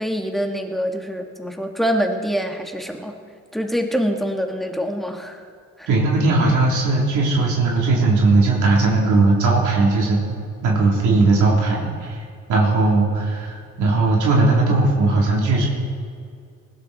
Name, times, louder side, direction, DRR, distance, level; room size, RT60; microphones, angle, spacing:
voice 1, 0.0-3.1 3.5-5.4 5.8-5.9, equal, ahead, 3 dB, 2.0 m, -25 dB
voice 2, 5.9-10.2 10.6-12.2 12.5-15.7, right 3 dB, 75° right, -3 dB, 3.6 m, -18 dB
20.0 x 16.0 x 4.4 m, 2.2 s
cardioid pair, 90°, 30 cm